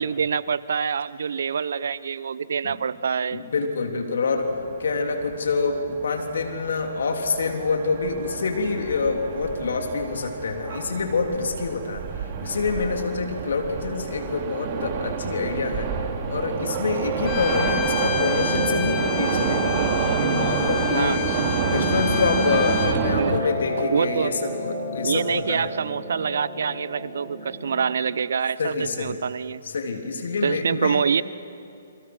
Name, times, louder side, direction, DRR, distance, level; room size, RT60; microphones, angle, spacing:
voice 1, 0.0-3.4 20.9-21.4 23.2-23.5 23.9-24.3 25.0-29.6 30.4-31.2, right 6 dB, 70° right, 18 dB, 0.7 m, -26 dB
voice 2, 3.3-4.5 4.8-15.9 16.3-19.7 20.2-21.3 21.7-25.7 28.6-29.2 29.6-31.0, left 4 dB, 70° left, 3 dB, 3.3 m, -26 dB
sound 1, 4.4-23.4, right 6 dB, 40° right, 2.3 m, -29 dB
Piano, 13.5-28.0, right 1 dB, 5° right, 4.8 m, -33 dB
Bowed string instrument, 17.2-23.0, left 10 dB, 35° left, 2.2 m, -30 dB
28.5 x 23.0 x 6.2 m, 2.6 s
hypercardioid pair, 135°, 0 cm